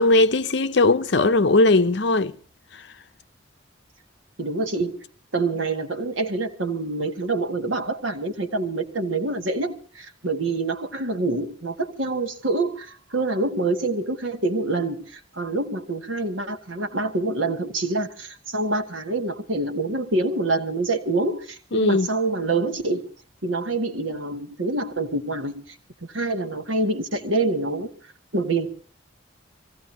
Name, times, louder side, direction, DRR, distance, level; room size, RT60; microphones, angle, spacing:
voice 1, 0.0-2.3 21.7-22.1, left 2 dB, 60° left, 0.7 m, -18 dB
voice 2, 4.4-5.0 5.3-23.1 23.4-25.8 26.1-27.9 28.3-28.7, right 2 dB, 80° right, 1.8 m, -26 dB
25.5 x 16.5 x 2.9 m
head